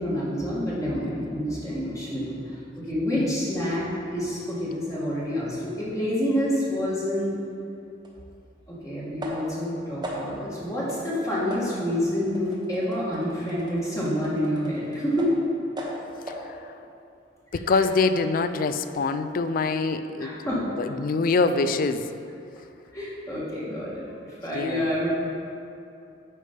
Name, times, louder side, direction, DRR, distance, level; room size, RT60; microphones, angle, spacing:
voice 1, 0.0-7.4 8.7-15.3 17.7-17.8 20.2-20.6 22.9-25.1, equal, 15° left, -7 dB, 1.6 m, -28 dB
sound 1, 8.0-8.1 9.2-9.6 10.0-10.5 10.9-11.1 11.5-15.5 15.8-16.5, equal, 25° right, 0.9 m, -38 dB
voice 2, 17.5-20.4 20.8-22.1 24.5-24.9, left 3 dB, 45° left, 10 dB, 0.3 m, -24 dB
8.5 x 5.1 x 5.1 m, 2.6 s
head